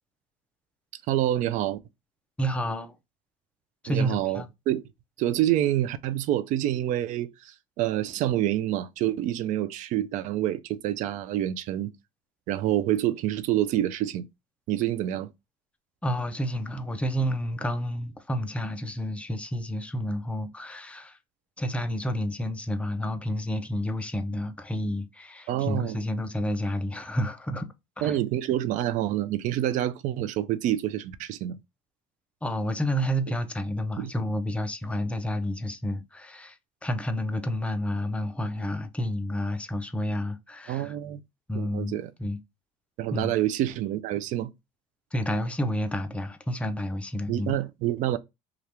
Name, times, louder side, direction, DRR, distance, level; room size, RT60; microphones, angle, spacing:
voice 1, 1.1-1.8 3.9-4.8 5.2-11.9 12.5-14.2 14.7-15.3 25.5-26.0 28.0-31.6 34.0-34.1 40.7-41.2 41.5-42.1 43.0-44.5 47.3-48.2, right 13 dB, 60° right, 0.5 m, -27 dB
voice 2, 2.4-3.0 3.8-4.5 16.0-21.2 21.6-27.7 28.0-28.2 32.4-41.0 41.5-42.4 43.1-43.3 45.1-47.6, equal, 10° left, 0.5 m, -30 dB
2.9 x 2.4 x 3.3 m
supercardioid pair, 100°, 15 cm